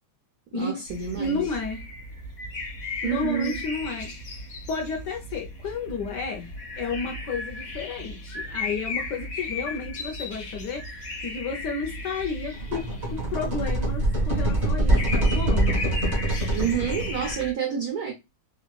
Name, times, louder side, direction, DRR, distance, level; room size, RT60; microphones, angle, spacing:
voice 1, 0.5-1.4 3.0-3.6 16.5-18.1, right 8 dB, 75° right, 0.8 m, -28 dB
sound 1, 0.9-17.5, left 2 dB, 40° left, 1.3 m, -36 dB
voice 2, 1.2-1.8 3.0-4.1 4.7-6.5 6.8-15.8, left 4 dB, 65° left, 1.1 m, -32 dB
sound 2, 12.5-17.4, right 1 dB, 35° right, 0.7 m, -24 dB
4.0 x 2.3 x 2.2 m
omnidirectional pair, 2.3 m